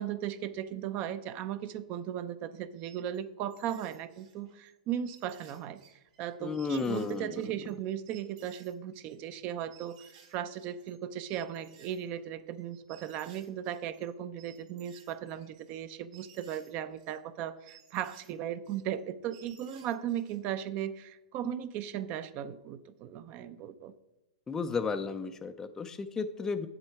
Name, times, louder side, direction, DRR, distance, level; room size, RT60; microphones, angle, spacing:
voice 1, 0.0-5.8 6.2-23.9, right 10 dB, 35° right, 13 dB, 0.6 m, -37 dB
sound 1, 2.8-3.2 3.5-4.7 5.0-7.8 8.1-9.2 9.7-10.9 11.3-14.1 14.4-17.2 17.6-19.0 19.3-20.4, right 8 dB, 60° right, 3.8 m, -59 dB
voice 2, 6.4-7.4 24.5-26.7, left 5 dB, 10° left, 7 dB, 0.4 m, -33 dB
7.8 x 7.5 x 4.7 m, 0.95 s
hypercardioid pair, 130°, 4 cm